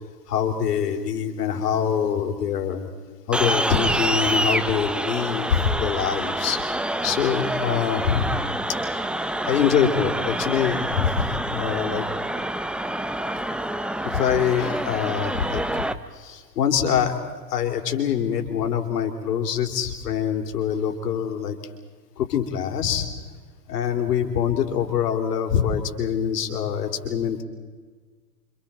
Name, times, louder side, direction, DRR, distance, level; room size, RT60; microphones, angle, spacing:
voice 1, 0.3-2.9 3.3-6.6 7.0-8.3 8.7-9.0 9.4-12.1 14.0-15.8 16.1-17.2 17.5-21.6 22.2-23.1 23.7-27.4, left 8 dB, 70° left, 4 dB, 3.9 m, -24 dB
sound 1, 3.3-15.9, right 1 dB, ahead, 0.8 m, -27 dB
30.0 x 26.0 x 4.5 m, 1.5 s
hypercardioid pair, 110°, 48 cm